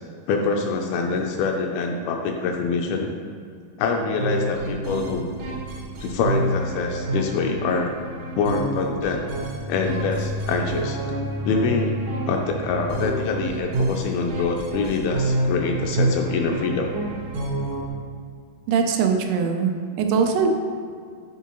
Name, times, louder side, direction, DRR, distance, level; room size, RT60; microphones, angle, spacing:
voice 1, 0.3-3.1 3.8-5.3 6.0-7.9 8.4-9.2 9.7-11.0 11.5-12.0 12.3-16.9, left 4 dB, 80° left, 2 dB, 2.2 m, -25 dB
sound 1, 4.2-17.9, right 1 dB, 70° right, 1.9 m, -28 dB
voice 2, 18.7-19.7 20.0-20.5, right 6 dB, 85° right, 4 dB, 2.6 m, -21 dB
8.2 x 4.6 x 2.9 m, 2.2 s
omnidirectional pair, 4.5 m